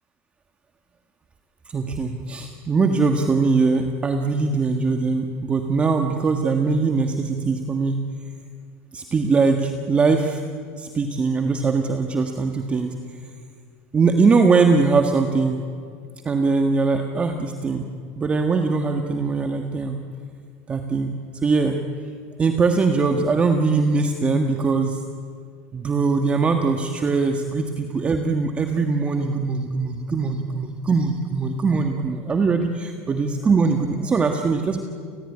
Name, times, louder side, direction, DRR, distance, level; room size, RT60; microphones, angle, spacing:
voice 1, 1.7-8.0 8.9-10.4 10.8-13.0 13.9-15.6 16.2-17.9 18.2-20.0 20.7-21.8 22.4-25.0 25.7-34.8, right 4 dB, 20° right, 5 dB, 1.7 m, -21 dB
30.0 x 19.0 x 10.0 m, 2.1 s
supercardioid pair, 145°, 6 cm